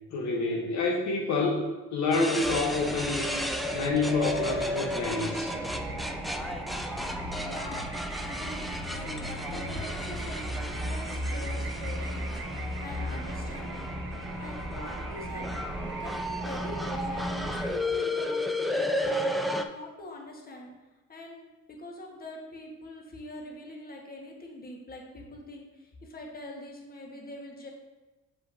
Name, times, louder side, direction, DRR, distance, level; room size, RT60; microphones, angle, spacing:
voice 1, 0.1-3.4 3.7-5.7 9.5-9.6, left 3 dB, 65° left, 0 dB, 1.1 m, -28 dB
sound 1, 2.1-19.6, left 1 dB, ahead, 0.4 m, -34 dB
sound 2, 2.4-17.7, right 1 dB, 40° right, 1.3 m, -37 dB
voice 2, 7.4-7.9 8.4-14.0 14.4-19.3 19.7-20.7 21.1-27.7, left 1 dB, 30° left, 0 dB, 1.4 m, -43 dB
7.4 x 5.5 x 2.7 m, 1.1 s
cardioid pair, 90°, 30 cm